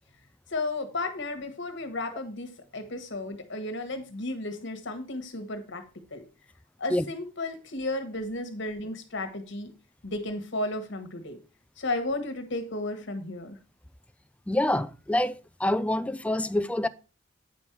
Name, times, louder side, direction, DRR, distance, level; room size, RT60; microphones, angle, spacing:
voice 1, 0.5-5.8 6.1-6.2 6.8-9.7 10.0-11.4 11.8-13.6, left 2 dB, 65° left, 1.5 m, -33 dB
voice 2, 14.5-16.9, left 1 dB, 5° left, 0.4 m, -26 dB
9.3 x 5.4 x 4.6 m
head